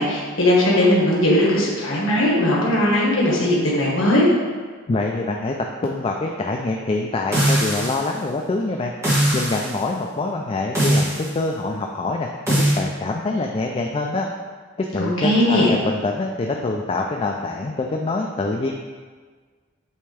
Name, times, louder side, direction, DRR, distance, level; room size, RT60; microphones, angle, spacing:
voice 1, 0.0-4.2 15.0-15.7, left 1 dB, 85° left, -5 dB, 1.6 m, -18 dB
voice 2, 4.9-5.5 5.8-8.9 9.3-14.3 14.8-18.7, left 3 dB, 30° left, 1 dB, 0.3 m, -25 dB
sound 1, 7.3-8.1 9.0-9.7 10.7-11.3 12.5-12.8, right 1 dB, 15° right, 1.6 m, -20 dB
8.5 x 3.4 x 3.3 m, 1.5 s
head